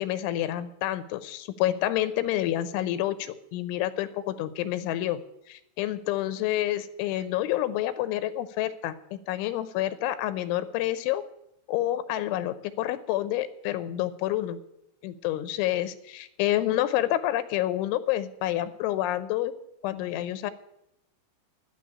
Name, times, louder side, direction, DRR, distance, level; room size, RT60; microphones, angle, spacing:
voice 1, 0.0-5.2 5.5-11.2 11.7-14.6 15.0-19.5 19.8-20.5, left 13 dB, 90° left, 13 dB, 3.2 m, -28 dB
12.5 x 6.9 x 9.6 m, 0.82 s
omnidirectional pair, 5.4 m